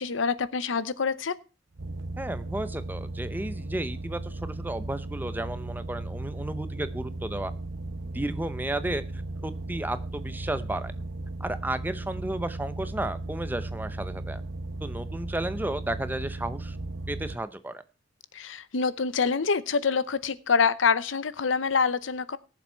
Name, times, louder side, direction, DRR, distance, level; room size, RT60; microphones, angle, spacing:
voice 1, 0.0-1.3 18.3-22.4, left 5 dB, 85° left, 0.7 m, -26 dB
sound 1, 1.8-17.4, right 2 dB, 85° right, 0.9 m, -36 dB
voice 2, 2.2-7.5 8.0-10.9 11.4-14.4 14.8-16.8 17.1-17.8, right 1 dB, 10° right, 0.6 m, -33 dB
18.0 x 7.1 x 4.5 m
head